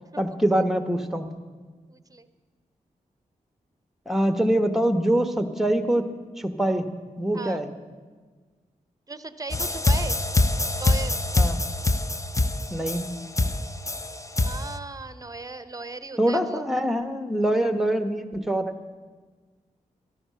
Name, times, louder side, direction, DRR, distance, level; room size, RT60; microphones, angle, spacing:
voice 1, 0.2-1.3 4.1-6.1 6.4-6.8 7.2-7.7 11.4-11.6 12.7-13.1 16.2-18.8, right 1 dB, ahead, 9 dB, 1.2 m, -24 dB
voice 2, 1.9-2.3 7.3-7.6 9.1-10.2 10.8-11.2 14.4-16.7, right 3 dB, 25° right, 12 dB, 0.9 m, -37 dB
sound 1, 9.5-14.7, left 2 dB, 20° left, 0.7 m, -24 dB
13.0 x 12.0 x 5.7 m, 1.4 s
supercardioid pair, 45°, 16 cm